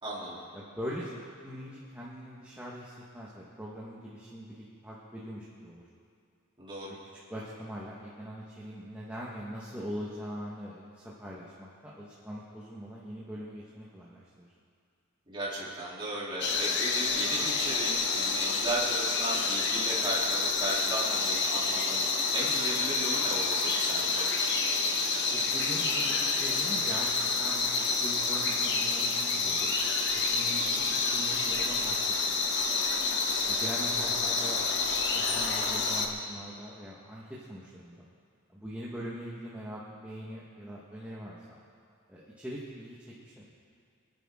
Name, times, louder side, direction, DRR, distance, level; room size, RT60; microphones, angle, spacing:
voice 1, 0.0-0.4 6.6-6.9 15.3-24.3, right 1 dB, 25° right, -7 dB, 3.5 m, -35 dB
voice 2, 0.5-5.8 7.3-14.5 25.3-29.7 30.1-32.0 32.2-32.3 33.5-34.7 35.0-38.1 38.5-41.6 42.1-43.5, equal, 5° right, -7 dB, 1.5 m, -42 dB
sound 1, 16.4-36.1, left 4 dB, 50° left, 1.3 m, -28 dB
26.0 x 10.5 x 3.8 m, 2.2 s
head